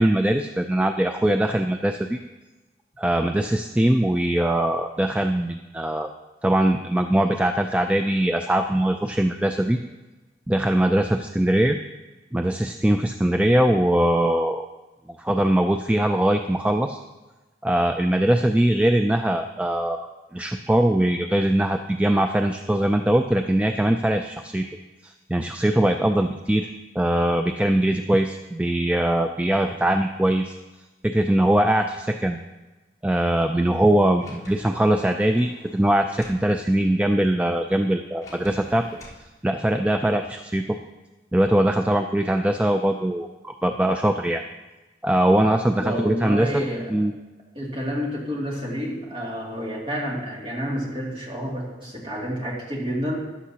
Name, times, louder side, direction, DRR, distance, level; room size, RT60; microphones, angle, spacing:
voice 1, 0.0-2.2 3.0-6.1 6.4-9.8 10.5-11.8 12.3-14.7 15.2-17.0 17.6-20.0 20.3-24.7 25.0-26.7 27.0-30.6 31.0-32.4 33.0-38.9 39.4-40.6 41.3-44.4 45.0-46.6 46.9-47.1, right 1 dB, 10° right, 5 dB, 0.3 m, -21 dB
Sliding door, 34.2-36.5 38.2-39.2, equal, 20° left, 3.6 m, -46 dB
voice 2, 45.8-47.0 47.5-53.3, equal, 30° right, -4 dB, 2.5 m, -29 dB
14.5 x 11.0 x 2.9 m, 1.1 s
head